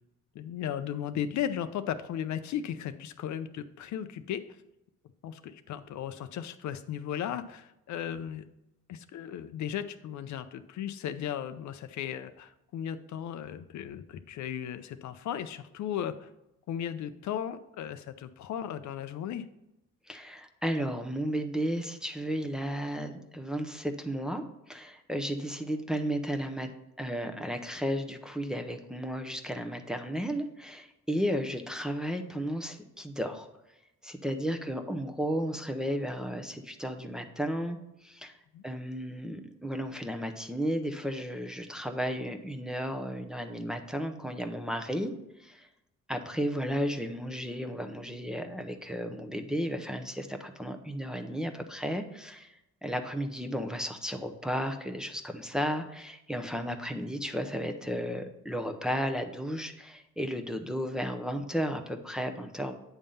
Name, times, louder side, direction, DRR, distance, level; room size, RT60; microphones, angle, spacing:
voice 1, 0.3-4.4 5.2-8.4 8.9-16.3 16.7-19.5 38.5-38.6, left 9 dB, 70° left, 11 dB, 0.5 m, -36 dB
voice 2, 20.1-26.7 27.0-33.5 34.0-38.4 38.6-45.1 45.4-45.7 46.1-62.8, equal, ahead, 5 dB, 0.7 m, -34 dB
8.9 x 3.6 x 5.5 m, 0.88 s
cardioid pair, 90°, 30 cm